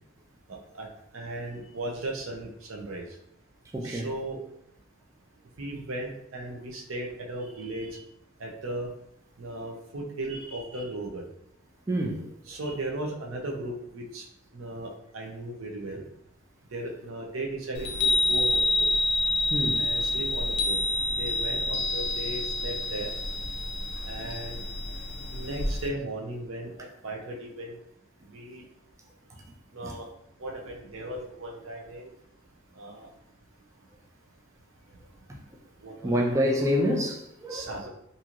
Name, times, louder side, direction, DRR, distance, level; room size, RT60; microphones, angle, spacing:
voice 1, 1.1-3.1 3.8-4.4 5.6-8.0 8.4-8.9 9.4-11.2 12.5-14.2 14.5-16.0 16.7-18.9 19.8-20.8 21.1-23.1 24.1-24.6 25.3-26.7 27.0-27.8 28.3-28.6 29.7-30.1 30.4-32.1 32.8-33.1 35.8-36.3 37.5-37.9, right 1 dB, 85° right, 0.6 m, -36 dB
voice 2, 3.7-4.1 11.9-12.2 19.5-19.8 29.8-29.9 36.0-37.7, equal, 15° right, 0.4 m, -27 dB
Chime, 17.8-25.9, left 2 dB, 55° left, 0.4 m, -28 dB
2.9 x 2.7 x 2.4 m
head